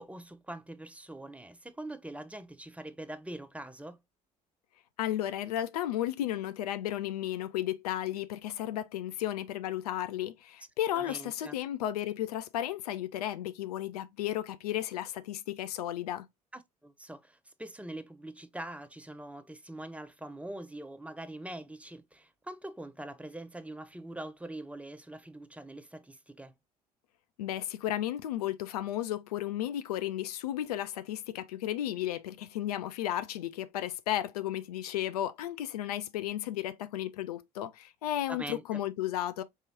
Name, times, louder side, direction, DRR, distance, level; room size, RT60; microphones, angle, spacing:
voice 1, 0.0-4.0 10.9-11.6 16.5-26.5 38.3-38.8, right 1 dB, 5° right, 0.5 m, -43 dB
voice 2, 5.0-16.3 27.4-39.4, left 12 dB, 70° left, 0.4 m, -34 dB
4.7 x 2.9 x 2.7 m
figure-of-eight pair, 55°, 20 cm